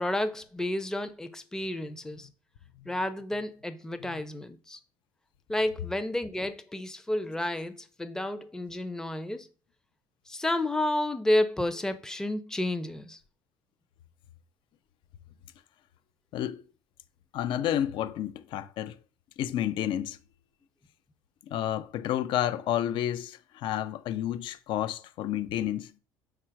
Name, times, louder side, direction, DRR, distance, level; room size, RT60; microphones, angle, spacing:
voice 1, 0.0-2.3 2.9-4.8 5.5-9.5 10.3-13.2, left 1 dB, 5° left, 0.5 m, -31 dB
voice 2, 17.3-19.0 19.4-20.2 21.5-25.9, left 11 dB, 65° left, 0.5 m, -30 dB
4.5 x 2.4 x 4.5 m
supercardioid pair, 85°, 9 cm